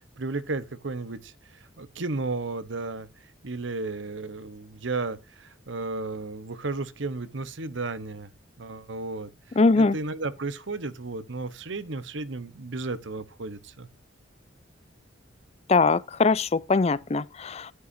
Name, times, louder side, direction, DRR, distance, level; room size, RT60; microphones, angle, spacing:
voice 1, 0.2-1.3 1.8-3.1 3.4-8.3 8.6-9.3 9.8-13.9, right 3 dB, 70° right, 1.0 m, -33 dB
voice 2, 9.6-10.0 15.7-17.7, left 3 dB, 30° left, 0.4 m, -22 dB
11.5 x 9.5 x 2.6 m
head